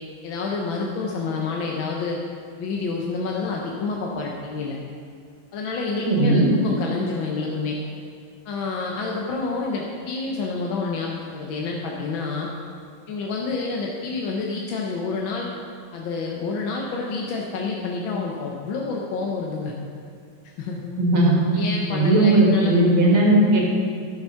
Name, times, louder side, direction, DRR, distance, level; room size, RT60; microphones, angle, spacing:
voice 1, 0.2-2.2 2.6-4.8 5.5-7.8 8.4-12.5 13.1-15.5 15.9-19.7 20.6-20.9 21.5-23.0, left 4 dB, 75° left, -1 dB, 1.7 m, -28 dB
voice 2, 6.1-6.5 21.0-21.3 21.9-23.6, right 1 dB, 85° right, -3 dB, 3.0 m, -17 dB
12.0 x 7.1 x 5.7 m, 2.2 s
omnidirectional pair, 2.2 m